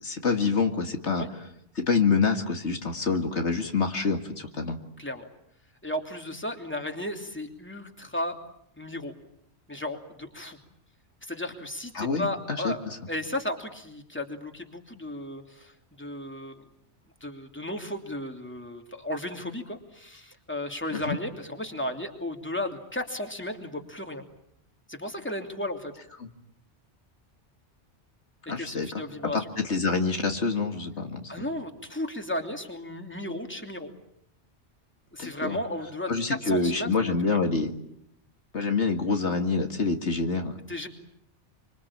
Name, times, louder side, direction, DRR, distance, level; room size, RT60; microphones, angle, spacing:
voice 1, 0.0-1.3 1.8-4.8 11.9-13.0 20.9-21.1 28.5-28.9 29.3-31.3 35.2-35.6 36.1-37.7 38.5-40.6, left 4 dB, 75° left, 5 dB, 2.4 m, -26 dB
voice 2, 5.0-5.3 5.8-8.4 8.8-9.1 9.7-10.6 11.2-16.6 17.2-24.2 24.9-25.9 28.6-29.5 31.3-33.9 35.1-37.4 40.7-40.9, left 1 dB, 10° left, 4 dB, 3.0 m, -34 dB
26.5 x 25.5 x 8.8 m, 0.73 s
omnidirectional pair, 1.2 m